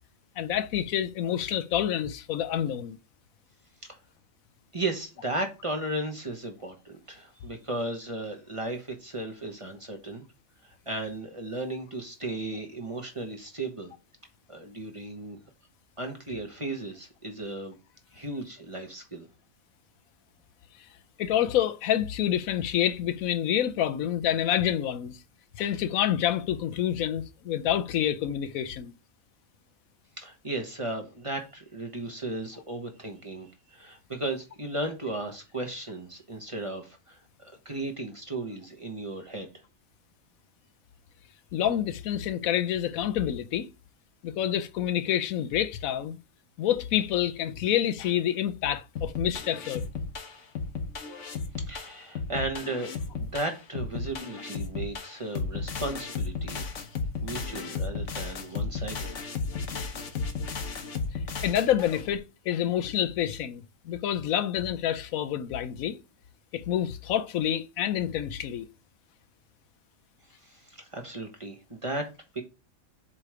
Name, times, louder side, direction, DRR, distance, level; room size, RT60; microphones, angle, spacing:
voice 1, 0.4-3.0 21.2-25.2 25.6-28.9 41.5-43.7 44.2-46.2 46.6-49.8 61.4-66.0 66.5-68.7, left 11 dB, 80° left, 1.1 m, -28 dB
voice 2, 4.7-10.2 10.6-13.9 14.5-15.4 16.0-17.8 18.1-19.3 30.2-39.5 51.6-56.7 57.2-59.1 70.4-72.1 72.3-72.4, right 2 dB, 25° right, 1.1 m, -35 dB
sound 1, 49.0-62.2, left 4 dB, 65° left, 1.2 m, -34 dB
7.4 x 3.3 x 4.7 m
omnidirectional pair, 1.4 m